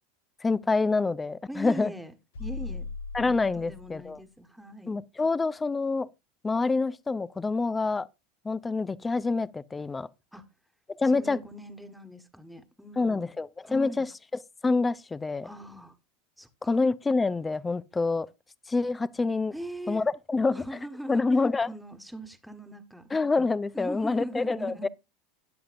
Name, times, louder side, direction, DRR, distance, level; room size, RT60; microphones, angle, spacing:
voice 1, 0.4-1.9 3.1-4.2 4.9-6.1 6.4-8.1 8.4-10.1 11.0-11.4 13.0-14.1 14.6-15.5 16.7-18.3 18.7-19.5 19.9-20.6 21.1-21.7 23.1-24.9, left 3 dB, 15° left, 0.5 m, -26 dB
voice 2, 1.5-2.1 2.4-2.9 3.5-4.9 10.3-10.4 11.1-13.3 13.6-14.1 15.4-16.0 16.4-16.8 19.5-20.0 20.5-21.3 21.7-23.0 23.7-24.9, right 1 dB, ahead, 1.5 m, -40 dB
sound 1, 2.3-4.2, left 4 dB, 75° left, 1.2 m, -38 dB
14.0 x 10.0 x 2.6 m
figure-of-eight pair, 80°, 0 cm